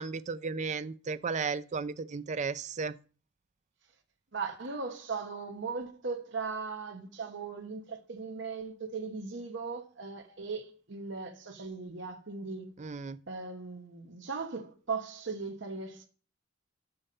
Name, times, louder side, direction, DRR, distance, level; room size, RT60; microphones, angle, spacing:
voice 1, 0.0-3.0 12.8-13.2, right 5 dB, 40° right, 0.4 m, -34 dB
voice 2, 4.3-12.7 13.3-16.0, right 4 dB, 65° right, 1.1 m, -38 dB
5.7 x 5.3 x 6.8 m
head